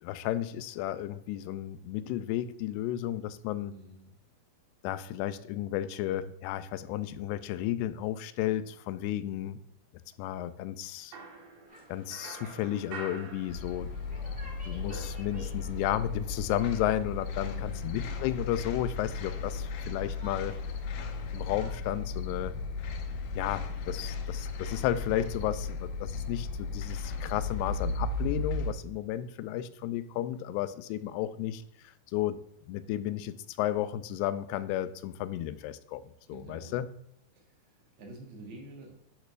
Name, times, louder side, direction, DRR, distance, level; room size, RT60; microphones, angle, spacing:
voice 1, 0.0-3.7 4.8-9.6 10.2-11.2 11.9-13.9 14.6-20.6 21.3-22.6 23.3-32.4 32.7-36.0 36.3-36.9, left 12 dB, 90° left, 14 dB, 2.6 m, -33 dB
voice 2, 3.7-4.1 17.4-17.9 30.9-31.1 36.3-36.8 37.3-38.9, right 2 dB, 50° right, 0 dB, 1.5 m, -48 dB
sound 1, 11.1-14.1 14.4-15.9, right 3 dB, 70° right, 3.3 m, -46 dB
sound 2, 11.7-21.7, equal, 5° right, 0.6 m, -55 dB
sound 3, 13.5-28.7, left 4 dB, 75° left, 2.1 m, -35 dB
10.5 x 6.2 x 2.5 m, 0.77 s
omnidirectional pair, 4.6 m